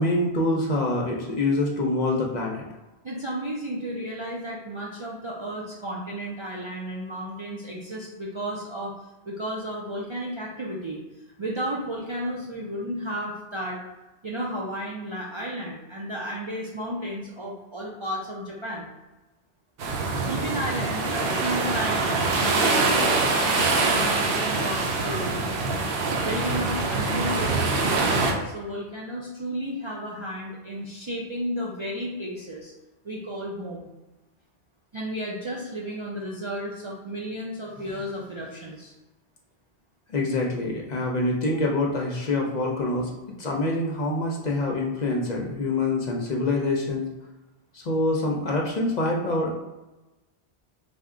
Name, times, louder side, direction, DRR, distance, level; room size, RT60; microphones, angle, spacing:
voice 1, 0.0-2.6 40.1-43.1 43.4-47.0 47.7-49.5, left 2 dB, 50° left, -1 dB, 0.6 m, -25 dB
voice 2, 3.0-8.9 9.3-11.0 11.4-13.8 14.2-18.9 20.2-23.6 23.9-25.4 26.2-32.7 33.0-33.9 34.9-38.9, equal, 50° right, -4 dB, 0.3 m, -33 dB
sound 1, 19.8-28.3, right 3 dB, 70° right, 0.7 m, -24 dB
3.4 x 2.1 x 3.6 m, 1.1 s
omnidirectional pair, 1.1 m